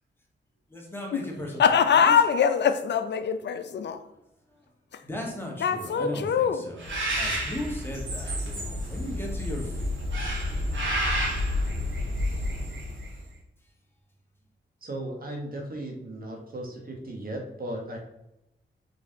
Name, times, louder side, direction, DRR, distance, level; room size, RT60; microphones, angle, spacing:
voice 1, 0.7-1.6 1.9-2.2 4.0-4.1 5.0-9.9 12.3-12.4, left 1 dB, 10° left, 1.5 m, -36 dB
voice 2, 1.6-4.0 5.6-6.6, left 7 dB, 60° left, 0.5 m, -23 dB
Bird, 6.8-13.2, equal, 70° right, 1.7 m, -29 dB
voice 3, 14.8-18.0, right 1 dB, 45° right, 1.2 m, -36 dB
4.1 x 3.3 x 3.7 m
cardioid pair, 60°, 20 cm